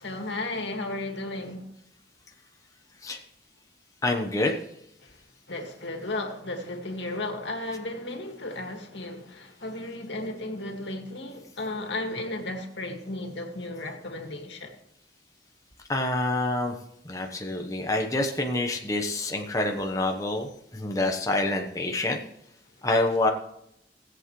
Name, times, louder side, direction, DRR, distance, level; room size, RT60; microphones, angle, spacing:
voice 1, 0.0-1.7 5.0-5.2 5.5-14.7, left 2 dB, 90° left, 2.1 m, -34 dB
voice 2, 4.0-4.6 15.9-16.8 17.0-22.2 22.8-23.3, left 2 dB, 20° left, 1.1 m, -27 dB
18.5 x 8.2 x 3.2 m
head